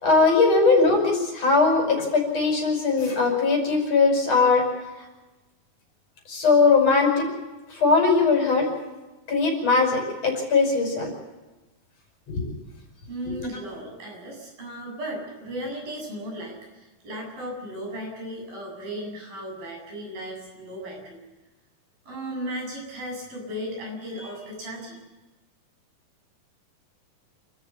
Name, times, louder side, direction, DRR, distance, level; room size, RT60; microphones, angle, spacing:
voice 1, 0.0-4.6 6.3-7.3 7.7-8.7 9.3-11.1 12.3-12.4 13.3-13.4, left 4 dB, 45° left, 2 dB, 6.6 m, -20 dB
voice 2, 13.1-21.2 22.0-25.0, equal, 75° right, 0 dB, 9.5 m, -35 dB
29.0 x 14.0 x 7.1 m, 1.1 s
omnidirectional pair, 4.0 m